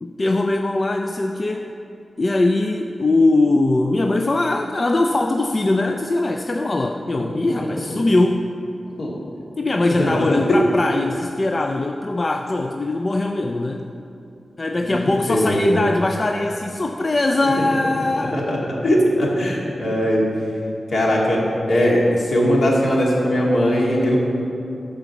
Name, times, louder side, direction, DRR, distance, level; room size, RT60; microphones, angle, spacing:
voice 1, 0.0-1.7 2.2-8.5 9.6-13.9 14.6-18.5, left 2 dB, 30° left, 4 dB, 0.4 m, -21 dB
voice 2, 15.3-15.8 18.3-18.6 18.8-20.2 20.9-21.4 21.7-24.2, equal, 60° left, -4 dB, 2.2 m, -19 dB
11.5 x 5.0 x 7.1 m, 2.7 s
wide cardioid pair, 160°, 0 cm